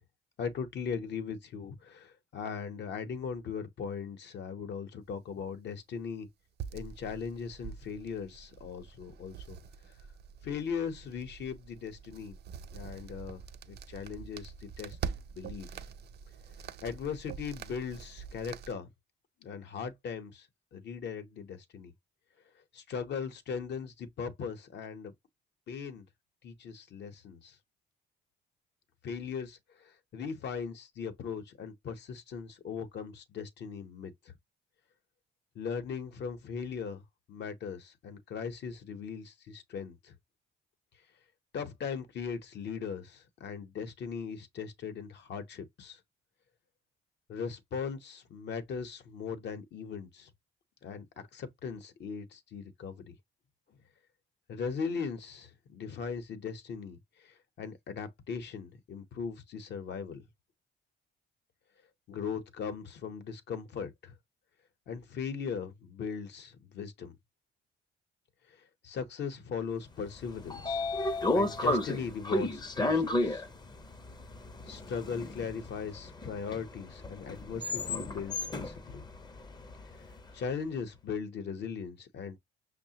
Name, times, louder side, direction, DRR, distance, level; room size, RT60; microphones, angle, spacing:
voice 1, 0.4-6.3 6.7-9.6 10.4-12.4 12.7-13.4 13.7-15.0 15.3-15.7 16.8-18.9 19.4-20.5 20.7-21.9 22.7-25.1 25.7-26.0 26.4-27.6 29.0-34.3 35.5-37.0 37.3-40.1 41.5-46.0 47.3-50.3 50.8-53.1 54.5-60.2 62.1-64.1 64.9-67.2 68.8-73.4 74.7-79.1 80.0-80.1 80.3-82.4, left 6 dB, 60° left, 0.8 m, -39 dB
sound 1, 6.6-18.7, right 7 dB, 55° right, 0.4 m, -45 dB
Train / Sliding door, 70.1-80.2, left 2 dB, 20° left, 0.6 m, -33 dB
5.5 x 2.1 x 2.7 m
cardioid pair, 90°, 20 cm